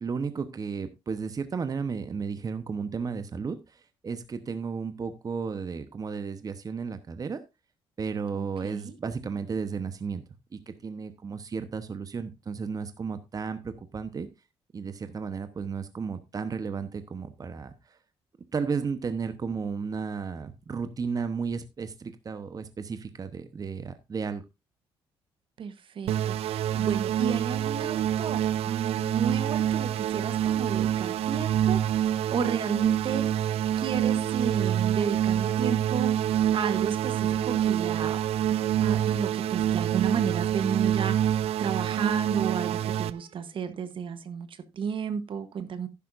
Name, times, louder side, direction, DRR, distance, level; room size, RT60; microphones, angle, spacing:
voice 1, 0.0-7.4 8.0-10.2 10.5-14.3 14.7-18.0 18.5-24.4, right 5 dB, 35° right, 1.0 m, -33 dB
voice 2, 8.3-8.9 25.6-28.4 28.7-38.2 38.5-45.9, right 6 dB, 55° right, 1.1 m, -32 dB
sound 1, 26.1-43.1, right 11 dB, 70° right, 0.5 m, -26 dB
10.5 x 10.5 x 2.6 m
cardioid pair, 85°, 10 cm